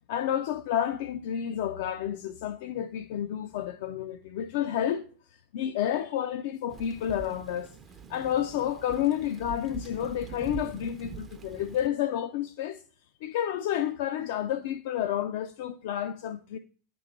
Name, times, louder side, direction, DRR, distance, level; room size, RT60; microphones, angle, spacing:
voice 1, 0.1-5.0 5.5-7.7 8.1-12.8 13.2-16.6, left 10 dB, 55° left, 0.3 m, -30 dB
Thunder / Rain, 6.7-11.9, right 7 dB, 25° right, 0.5 m, -44 dB
8.9 x 3.0 x 4.0 m
figure-of-eight pair, 85°, 0 cm